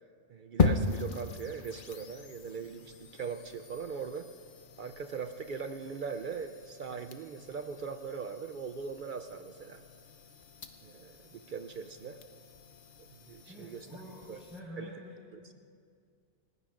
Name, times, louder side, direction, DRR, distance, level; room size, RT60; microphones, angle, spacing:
voice 1, 0.3-4.3 4.8-9.8 10.8-12.2 13.0-14.0 14.3-14.4 14.8-14.9 15.3-15.5, right 5 dB, 60° right, 7 dB, 0.5 m, -40 dB
sound 1, 0.6-14.6, left 4 dB, 50° left, 0.9 m, -38 dB
voice 2, 13.5-15.6, equal, ahead, -10 dB, 4.7 m, -47 dB
29.5 x 16.0 x 2.5 m, 2.3 s
omnidirectional pair, 1.3 m